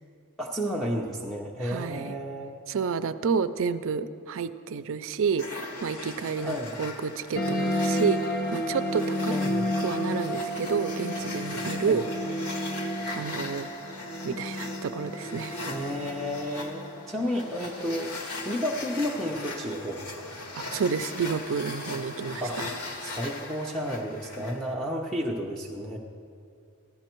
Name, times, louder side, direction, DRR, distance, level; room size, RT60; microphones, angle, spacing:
voice 1, 0.4-2.5 6.4-6.8 9.3-9.7 11.9-12.0 15.7-18.1 18.4-20.3 22.4-22.6 23.0-26.0, equal, ahead, -2 dB, 0.7 m, -32 dB
voice 2, 1.6-2.2 2.7-9.3 9.8-12.1 13.1-13.7 14.2-15.7 20.6-22.7, right 6 dB, 60° right, 12 dB, 0.4 m, -30 dB
sound 1, 5.4-24.7, left 2 dB, 90° left, 1.3 m, -39 dB
sound 2, 7.4-18.3, equal, 45° left, 0.7 m, -32 dB
15.0 x 11.5 x 4.5 m, 2.4 s
head